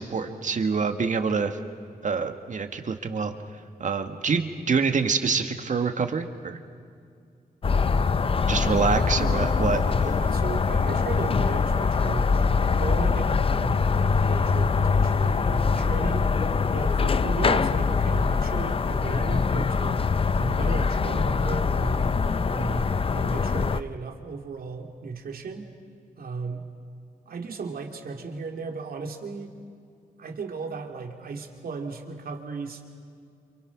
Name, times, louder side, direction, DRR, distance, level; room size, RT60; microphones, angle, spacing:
voice 1, 0.0-1.5 2.0-3.3 3.8-6.6 8.5-9.8, right 5 dB, 55° right, 7 dB, 1.8 m, -26 dB
sound 1, 7.6-23.8, left 5 dB, 35° left, 0.6 m, -23 dB
voice 2, 8.6-8.9 10.1-13.8 14.2-16.3 16.7-20.1 20.3-22.0 22.5-25.7 26.2-26.7 27.3-29.5 30.2-32.8, right 4 dB, 75° right, 4 dB, 2.8 m, -35 dB
29.0 x 28.5 x 6.1 m, 2.4 s
wide cardioid pair, 125°, 16 cm